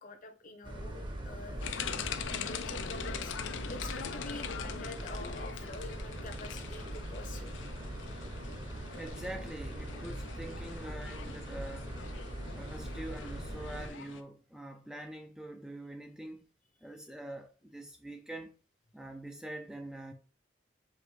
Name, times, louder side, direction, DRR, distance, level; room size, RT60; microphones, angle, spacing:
voice 1, 0.0-1.6 2.4-3.3 3.7-7.6 8.0-8.3 13.6-13.7, left 2 dB, 45° left, 0.8 m, -47 dB
sound 1, 0.6-13.9, right 1 dB, 25° right, 0.8 m, -41 dB
sound 2, 1.6-14.2, left 7 dB, 80° left, 0.5 m, -43 dB
voice 2, 9.0-12.0 12.4-16.5 16.8-18.5 18.9-20.1, right 1 dB, 5° right, 0.3 m, -44 dB
4.7 x 3.0 x 3.2 m
head